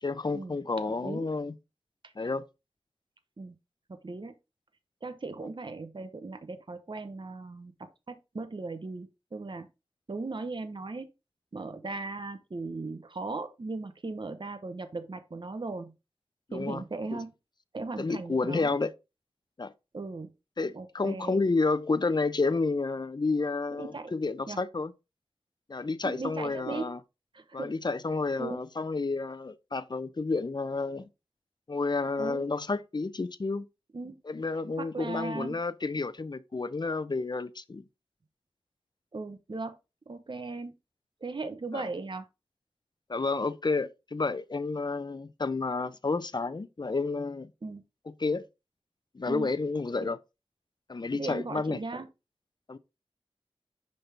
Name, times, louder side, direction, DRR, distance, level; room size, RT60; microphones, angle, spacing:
voice 1, 0.0-1.5 2.2-2.4 16.5-16.8 17.1-17.2 18.0-18.9 19.6-19.7 20.6-24.9 25.7-27.0 27.5-31.1 31.7-33.6 34.2-37.8 41.7-41.9 43.1-47.5 48.2-48.5 49.1-50.2 50.9-51.8 52.7-52.8, left 3 dB, 45° left, 0.6 m, -30 dB
voice 2, 4.0-4.3 5.0-7.7 8.1-9.7 10.1-11.1 11.5-15.9 16.5-17.3 17.7-18.8 19.9-20.3 20.7-21.4 23.7-24.1 24.5-24.6 26.0-26.9 27.3-27.7 28.4-28.6 32.2-32.4 33.9-34.2 34.8-35.6 39.1-39.8 40.1-40.7 41.2-42.2 47.6-47.8 49.3-49.5 51.1-52.1, right 3 dB, 50° right, 0.8 m, -37 dB
5.8 x 5.3 x 3.3 m
wide cardioid pair, 50°, 11 cm